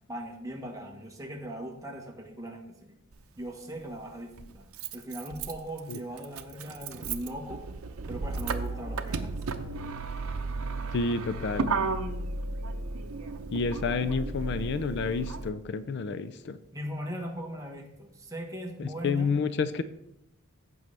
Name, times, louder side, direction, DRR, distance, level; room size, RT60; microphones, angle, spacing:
voice 1, 0.1-2.9 3.4-7.6 8.1-9.9 13.7-14.1 16.7-19.3, equal, 15° right, 1 dB, 1.3 m, -39 dB
Motor vehicle (road), 3.1-3.2 4.4-15.5, right 3 dB, 85° right, 0.6 m, -34 dB
voice 2, 10.9-11.7 13.5-16.6 18.8-19.8, left 4 dB, 55° left, 12 dB, 0.4 m, -29 dB
15.0 x 5.4 x 3.3 m, 0.80 s
head